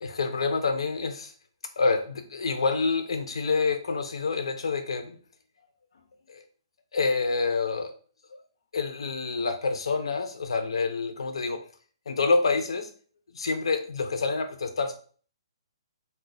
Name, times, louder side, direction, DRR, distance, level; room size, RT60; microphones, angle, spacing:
voice 1, 0.0-1.3 1.8-5.2 6.3-6.4 6.9-7.9 8.7-11.6 12.1-12.9 13.3-14.9, left 4 dB, 85° left, 6 dB, 0.6 m, -27 dB
2.4 x 2.2 x 3.8 m, 0.42 s
hypercardioid pair, 175°, 3 cm